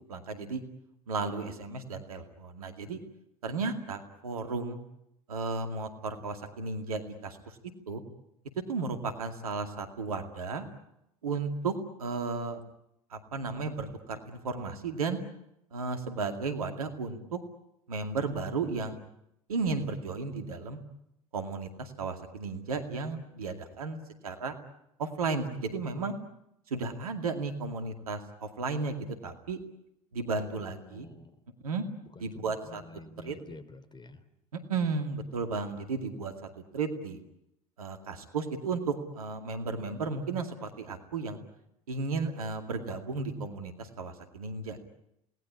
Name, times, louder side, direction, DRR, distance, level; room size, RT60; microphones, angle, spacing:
voice 1, 0.1-0.6 1.1-3.0 3.4-4.8 5.3-7.6 7.9-8.0 8.7-10.6 11.2-12.6 13.1-15.2 15.7-17.4 17.9-19.0 19.5-20.8 21.3-24.6 25.0-26.1 26.7-29.6 30.1-31.1 31.6-31.8 32.2-32.8 33.2-33.4 34.5-37.2 37.8-41.4 41.9-44.8, right 4 dB, 80° right, 6 dB, 2.3 m, -34 dB
voice 2, 30.3-31.4 32.1-34.2, left 2 dB, 25° left, 11 dB, 3.2 m, -50 dB
27.5 x 19.0 x 9.8 m, 0.82 s
figure-of-eight pair, 65°, 19 cm